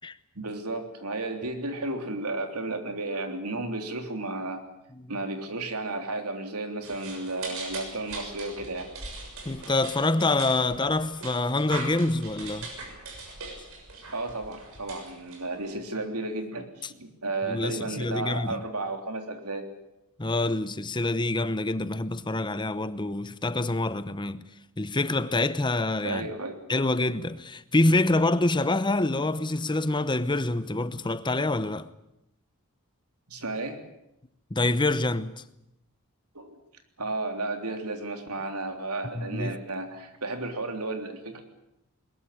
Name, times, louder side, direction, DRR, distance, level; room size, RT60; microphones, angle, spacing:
voice 1, 0.3-4.6 5.1-8.9 14.1-19.7 26.0-26.6 33.3-33.8 36.3-36.6 37.0-41.4, right 2 dB, 90° right, 3.4 m, -33 dB
sound 1, 6.8-15.8, right 2 dB, 65° right, 6.7 m, -41 dB
voice 2, 9.4-12.7 16.8-16.9 17.5-18.6 20.2-24.4 24.8-26.3 26.7-31.9 34.5-35.4 39.1-39.6, left 2 dB, 20° left, 0.8 m, -26 dB
21.5 x 20.5 x 8.5 m
head